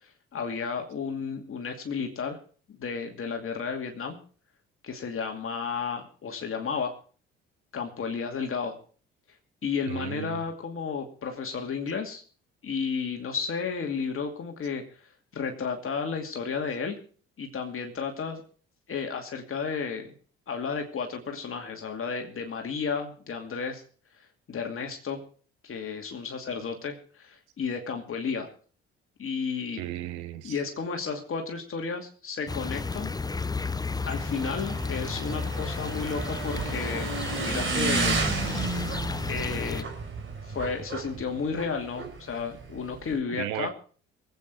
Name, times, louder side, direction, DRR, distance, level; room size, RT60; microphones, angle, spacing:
voice 1, 0.0-2.4 2.7-4.2 4.8-6.9 7.7-8.8 9.6-12.2 12.6-15.0 15.3-17.0 17.4-18.4 18.9-20.1 20.5-23.8 24.5-25.2 25.6-28.5 29.2-29.8 30.4-33.1 34.1-37.1 37.4-38.2 39.3-39.9 40.4-43.7, left 5 dB, 45° left, 3 dB, 2.5 m, -32 dB
voice 2, 9.9-10.4 29.8-30.6 43.3-43.7, right 14 dB, 80° right, 12 dB, 1.1 m, -35 dB
sound 1, 32.5-39.8, left 4 dB, 15° left, 0.7 m, -33 dB
Motorcycle / Engine, 34.0-43.2, right 3 dB, 40° right, 3.9 m, -32 dB
23.0 x 8.8 x 4.8 m, 0.41 s
hypercardioid pair, 55°, 30 cm